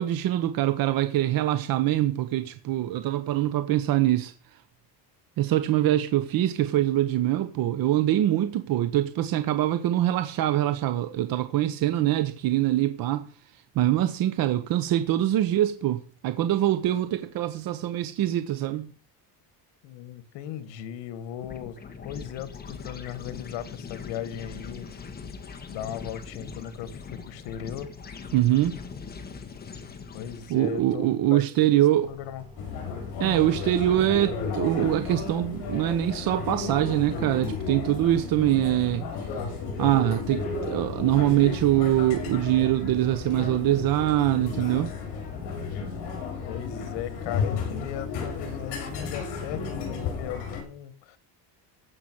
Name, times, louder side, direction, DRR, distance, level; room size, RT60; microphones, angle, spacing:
voice 1, 0.0-4.3 5.4-13.3 13.7-18.9 28.3-28.8 30.5-32.1 33.2-39.0 39.8-44.9, right 13 dB, 50° right, 1.2 m, -24 dB
voice 2, 19.8-21.8 22.0-24.9 25.7-27.9 30.1-31.7 32.0-32.4 46.5-51.2, left 10 dB, 85° left, 2.0 m, -37 dB
sound 1, 21.4-30.8, left 5 dB, 20° left, 1.7 m, -41 dB
sound 2, 32.0-50.6, equal, 10° right, 2.9 m, -48 dB
sound 3, 32.6-50.6, left 5 dB, 65° left, 6.8 m, -33 dB
15.5 x 6.1 x 8.0 m
cardioid pair, 160°, 43 cm